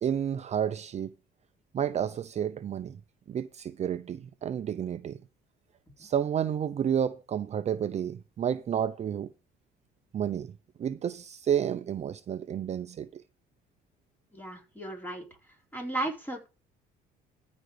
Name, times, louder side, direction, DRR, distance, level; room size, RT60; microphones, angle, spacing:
voice 1, 0.0-1.1 1.7-3.0 3.3-5.2 6.0-9.3 10.1-10.5 10.8-13.2, right 9 dB, 40° right, 0.6 m, -30 dB
voice 2, 14.3-15.2 15.7-16.5, right 2 dB, 10° left, 4.4 m, -35 dB
14.0 x 5.2 x 5.0 m
cardioid pair, 110°, 17 cm